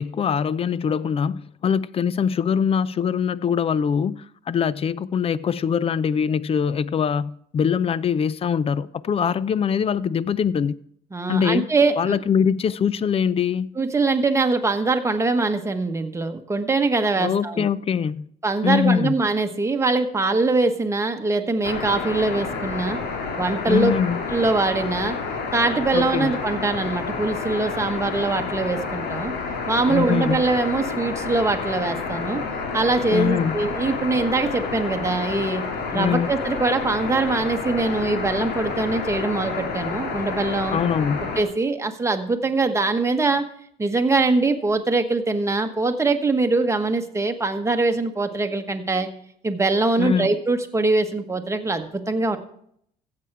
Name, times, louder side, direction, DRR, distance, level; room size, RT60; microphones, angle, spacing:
voice 1, 0.0-10.8 11.3-11.7 12.0-13.7 17.2-18.3 18.6-19.1 23.7-24.2 25.9-26.3 29.9-30.5 33.1-33.6 35.9-36.3 40.7-41.3 50.0-50.3, left 7 dB, 35° left, 0.4 m, -23 dB
voice 2, 11.1-12.2 13.8-17.6 18.4-23.0 23.4-23.9 24.3-25.2 25.5-29.3 29.7-32.4 32.7-35.6 35.9-40.8 41.4-43.4 43.8-49.1 49.4-52.4, right 3 dB, 15° right, 1.2 m, -23 dB
sound 1, 21.6-41.4, left 4 dB, 75° left, 2.0 m, -29 dB
15.0 x 7.8 x 4.7 m
cardioid pair, 110°, 17 cm